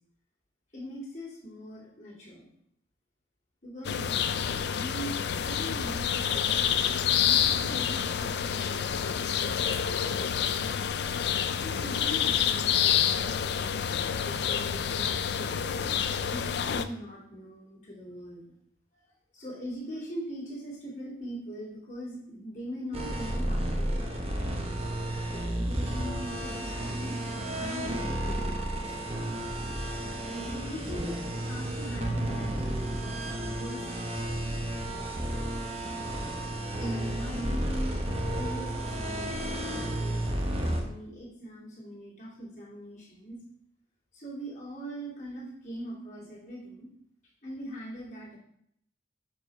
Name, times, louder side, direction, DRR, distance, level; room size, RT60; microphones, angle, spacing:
voice 1, 0.7-2.5 3.6-10.8 11.6-15.9 16.3-18.4 19.3-24.3 25.3-27.2 27.5-29.2 30.2-34.4 36.6-38.0 38.4-43.4 44.1-46.9 47.4-48.4, equal, 40° left, -6 dB, 2.3 m, -42 dB
sound 1, 3.8-16.8, left 8 dB, 65° left, 0.4 m, -28 dB
sound 2, 22.9-40.8, right 1 dB, 35° right, 1.0 m, -32 dB
6.2 x 4.8 x 5.1 m, 0.74 s
head